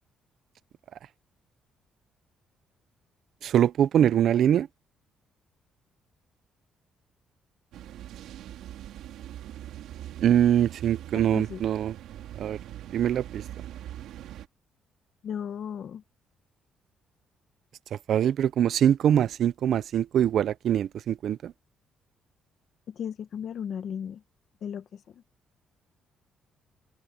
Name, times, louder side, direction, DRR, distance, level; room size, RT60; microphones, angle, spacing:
voice 1, 3.4-4.7 10.2-11.9 12.4-12.6 12.9-13.4 17.9-21.5, right 10 dB, 50° right, 0.4 m, -23 dB
sound 1, 7.7-14.5, right 12 dB, 80° right, 3.3 m, -42 dB
voice 2, 11.1-11.6 15.2-16.0 22.9-24.2 24.6-25.2, left 8 dB, 45° left, 1.1 m, -36 dB
open air
cardioid pair, 170°, 0 cm